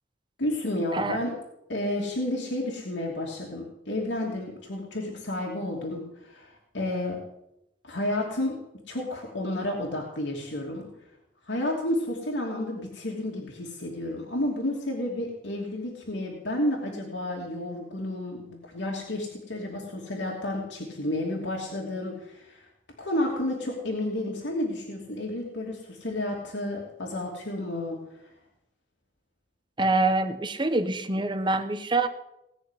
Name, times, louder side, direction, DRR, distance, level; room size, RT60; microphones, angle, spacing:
voice 1, 0.4-1.4 1.7-7.2 7.8-8.6 8.9-10.9 11.4-22.7 23.0-28.0, left 1 dB, 85° left, -2 dB, 2.8 m, -31 dB
voice 2, 29.8-32.1, right 2 dB, 25° right, 8 dB, 1.1 m, -25 dB
19.0 x 6.6 x 9.9 m, 0.87 s
head